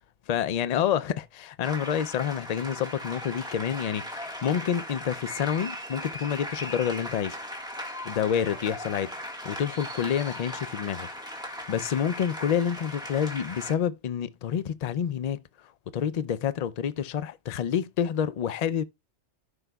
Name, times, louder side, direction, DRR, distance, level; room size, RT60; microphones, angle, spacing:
voice 1, 0.3-7.4 8.0-9.1 9.4-11.1 11.5-15.4 15.9-18.8, left 8 dB, 50° left, 0.5 m, -28 dB
sound 1, 1.6-13.7, equal, 5° right, 1.5 m, -38 dB
15.0 x 5.0 x 2.3 m
omnidirectional pair, 1.2 m